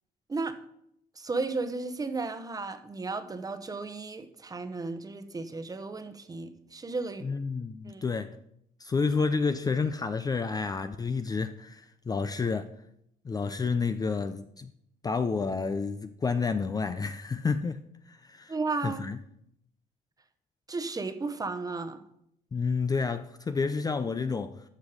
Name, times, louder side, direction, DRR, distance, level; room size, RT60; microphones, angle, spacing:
voice 1, 1.2-7.3 7.8-8.1 18.5-19.1 20.7-22.0, right 3 dB, 20° right, 1.0 m, -34 dB
voice 2, 7.2-8.4 8.8-12.7 13.2-14.7 15.0-17.8 18.1-18.6 18.8-19.2 22.5-24.6, left 4 dB, 20° left, 0.5 m, -30 dB
13.0 x 6.2 x 5.1 m
cardioid pair, 110°, 17 cm